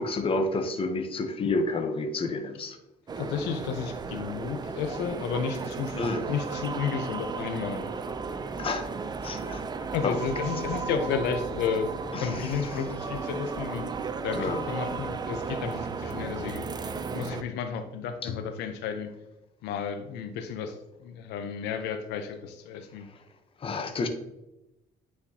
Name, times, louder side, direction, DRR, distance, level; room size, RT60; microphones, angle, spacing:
voice 1, 0.0-2.8 5.9-6.2 8.6-8.9 9.2-9.6 10.0-10.2 12.1-12.5 14.3-14.6 18.2-18.3 23.6-24.1, left 3 dB, 30° left, 6 dB, 0.8 m, -29 dB
sound 1, 3.1-17.4, right 5 dB, 25° right, 0.4 m, -35 dB
voice 2, 3.2-6.0 6.3-7.8 9.9-11.9 12.2-13.9 14.2-19.1 19.6-23.1, left 6 dB, 85° left, 7 dB, 0.7 m, -32 dB
9.2 x 4.4 x 2.8 m, 0.94 s
cardioid pair, 110°, 17 cm